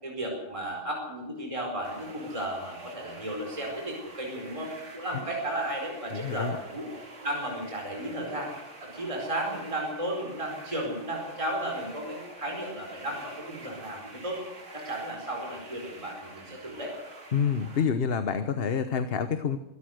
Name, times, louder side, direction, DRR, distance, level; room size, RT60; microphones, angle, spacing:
voice 1, 0.0-6.9 7.2-8.5 8.8-14.4 14.7-16.9, right 1 dB, 25° right, 0 dB, 4.7 m, -34 dB
sound 1, 1.8-17.8, right 3 dB, 75° right, 3.0 m, -47 dB
voice 2, 6.1-6.5 17.3-19.6, left 6 dB, 50° left, 10 dB, 1.2 m, -27 dB
25.0 x 14.0 x 7.9 m, 1.0 s
omnidirectional pair, 1.3 m